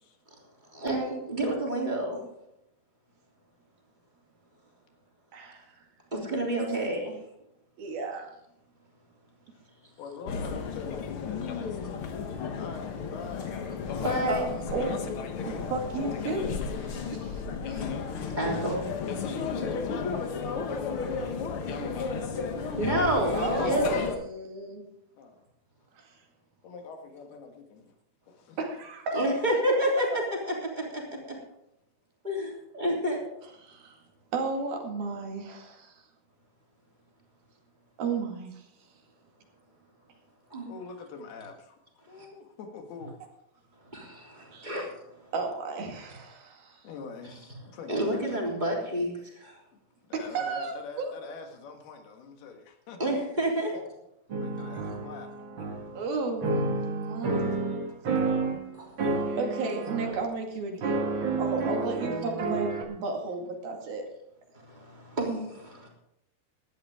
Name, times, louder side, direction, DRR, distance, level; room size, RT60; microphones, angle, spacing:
voice 1, 0.7-2.2 6.1-7.1 14.0-14.4 17.7-17.8 18.4-18.9 22.8-24.1 29.1-31.0 32.2-33.3 40.5-40.7 43.9-44.9 47.2-47.4 47.9-49.1 49.4-49.5 53.0-53.8 58.7-58.9 64.7-65.9, right 1 dB, 10° right, -2 dB, 3.1 m, -29 dB
voice 2, 5.3-5.8 6.7-6.8 7.8-8.3 14.3-16.5 16.8-17.4 23.3-24.8 26.0-26.1 28.6-29.4 33.6-34.0 34.3-36.0 38.0-38.7 44.5-44.8 45.3-46.8 50.1-51.3 56.0-56.6 56.9-57.6 59.4-64.1, right 3 dB, 75° right, 2 dB, 3.9 m, -33 dB
voice 3, 10.0-12.1 12.6-13.6 13.8-13.9 18.4-18.6 21.5-21.7 25.2-25.4 26.6-27.9 28.3-28.6 40.7-41.8 42.1-43.2 46.8-48.5 50.1-53.0 53.7-53.8 54.3-55.3 57.5-57.6 61.7-61.9, left 5 dB, 90° left, 4 dB, 3.7 m, -44 dB
sound 1, 10.3-24.1, left 5 dB, 70° left, 1.3 m, -33 dB
sound 2, 54.3-56.1 56.4-58.6 59.0-60.2 60.8-62.8, right 3 dB, 45° right, 1.8 m, -30 dB
17.0 x 12.0 x 3.7 m, 0.82 s
omnidirectional pair, 4.3 m